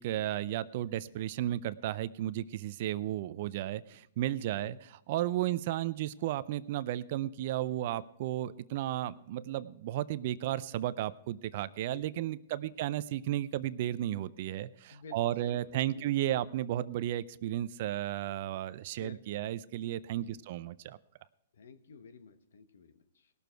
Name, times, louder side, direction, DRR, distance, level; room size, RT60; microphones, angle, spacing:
voice 1, 0.0-4.8 5.1-21.0, right 13 dB, 50° right, 17 dB, 0.5 m, -34 dB
voice 2, 11.9-12.2 12.6-12.8 14.9-16.4 18.9-19.4 20.2-20.4 21.5-23.3, left 5 dB, 75° left, 9 dB, 1.1 m, -52 dB
18.5 x 6.9 x 4.6 m, 0.73 s
hypercardioid pair, 130°, 0 cm